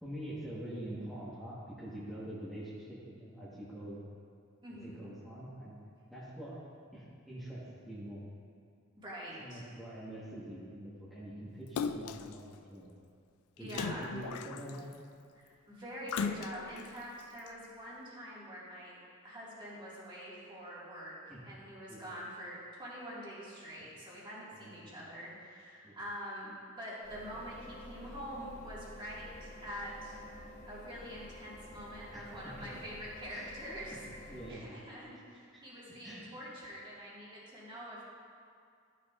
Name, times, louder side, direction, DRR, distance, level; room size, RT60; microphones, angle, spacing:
voice 1, 0.0-4.0 4.8-5.8 6.1-6.6 6.9-8.2 9.4-12.9 13.6-14.9 21.3-21.6 21.9-22.0 24.5-25.0 25.8-26.0 32.1-32.7 33.3-33.5 33.9-34.0 34.3-34.8 35.5-35.6 36.0-36.3, right 1 dB, ahead, -11 dB, 1.2 m, -45 dB
voice 2, 4.6-5.1 9.0-9.6 13.6-14.0 15.3-21.2 21.5-30.2 30.7-34.0 34.5-38.0, equal, 20° right, -7 dB, 1.9 m, -45 dB
Splash splatter, 11.8-12.4 13.7-14.9 16.1-16.9 17.5-17.6, left 6 dB, 80° left, 0.3 m, -37 dB
sound 1, 27.0-34.5, left 1 dB, 35° left, 1.5 m, -50 dB
12.5 x 6.7 x 2.4 m, 2.3 s
head